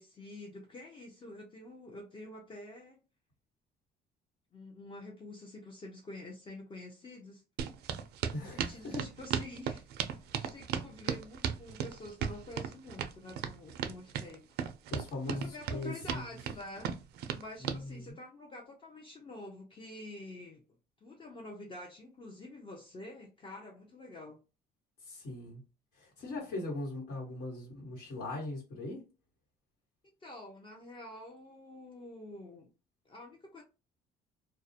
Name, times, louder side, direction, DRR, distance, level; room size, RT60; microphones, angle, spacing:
voice 1, 0.0-3.0 4.5-7.4 8.3-9.9 10.2-14.4 15.3-16.9 17.4-20.6 21.0-24.4 30.2-32.7 33.1-33.6, left 2 dB, 30° left, 0.5 m, -48 dB
sound 1, 7.6-17.8, right 8 dB, 75° right, 0.4 m, -36 dB
voice 2, 8.3-9.1 14.9-16.2 17.6-18.2 25.0-25.6 26.0-29.1, left 2 dB, 70° left, 1.3 m, -40 dB
2.3 x 2.0 x 2.7 m
cardioid pair, 110°, 17 cm